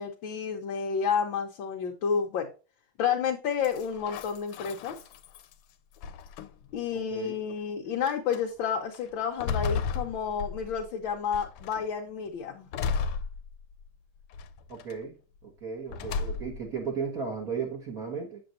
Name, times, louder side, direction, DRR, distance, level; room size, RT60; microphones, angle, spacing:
voice 1, 0.0-2.5 3.0-5.0 6.7-12.7, left 7 dB, 70° left, 1.5 m, -30 dB
sound 1, 3.6-5.5 6.0-6.8 7.5-7.6 8.1-8.4 8.9-10.9 11.3-11.9 12.7-13.9 14.3-14.9 15.9-16.7, left 5 dB, 90° left, 1.6 m, -34 dB
voice 2, 6.9-7.4 14.7-15.1 15.4-18.4, right 5 dB, 45° right, 1.7 m, -35 dB
7.8 x 7.1 x 2.6 m
omnidirectional pair, 2.4 m